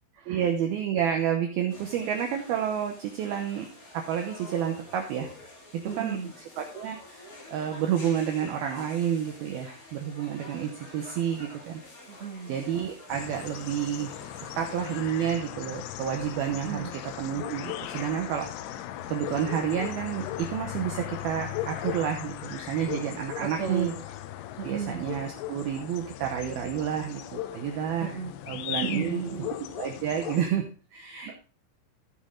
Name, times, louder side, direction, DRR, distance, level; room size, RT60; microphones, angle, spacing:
voice 1, 0.3-3.7 3.9-5.3 5.7-7.3 7.5-11.8 12.5-14.1 14.6-18.5 19.1-24.0 24.6-29.2 29.6-31.3, right 9 dB, 80° right, 3 dB, 2.2 m, -30 dB
sound 1, 1.7-15.0, left 1 dB, 50° left, 1.0 m, -48 dB
voice 2, 5.8-6.3 12.1-12.5 16.6-16.9 23.4-23.9 24.6-25.0 28.0-28.3 28.8-29.5 31.3-31.4, right 6 dB, 50° right, -1 dB, 1.8 m, -34 dB
sound 2, 13.1-30.5, left 12 dB, 80° left, 3.0 m, -38 dB
15.5 x 5.8 x 3.7 m, 0.34 s
omnidirectional pair, 5.6 m